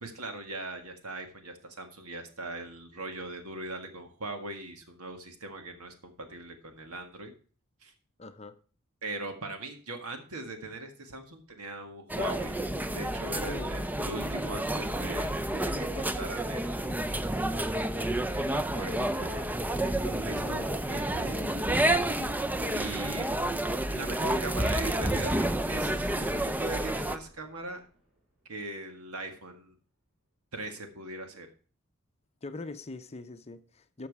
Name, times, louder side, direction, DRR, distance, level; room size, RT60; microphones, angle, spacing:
voice 1, 0.0-7.3 7.8-7.9 9.0-12.6 12.9-16.9 18.3-21.4 22.7-23.4 23.9-27.9 28.5-29.8 30.5-31.5, right 2 dB, 75° right, 1.8 m, -40 dB
voice 2, 8.2-8.6 13.4-13.8 20.3-20.7 21.2-21.5 32.4-34.1, left 2 dB, 30° left, 0.7 m, -42 dB
sound 1, 12.1-27.2, right 1 dB, 10° right, 0.5 m, -30 dB
sound 2, 25.7-28.9 29.2-29.3, equal, 55° right, 5.7 m, -55 dB
13.0 x 6.0 x 4.7 m
head